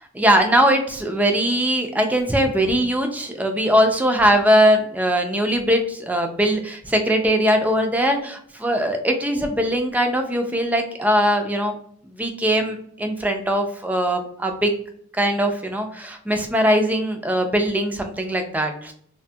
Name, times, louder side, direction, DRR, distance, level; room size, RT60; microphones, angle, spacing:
voice 1, 0.2-11.7 12.2-14.7 15.2-18.9, equal, 10° right, 4 dB, 0.3 m, -20 dB
2.5 x 2.2 x 2.6 m, 0.64 s
head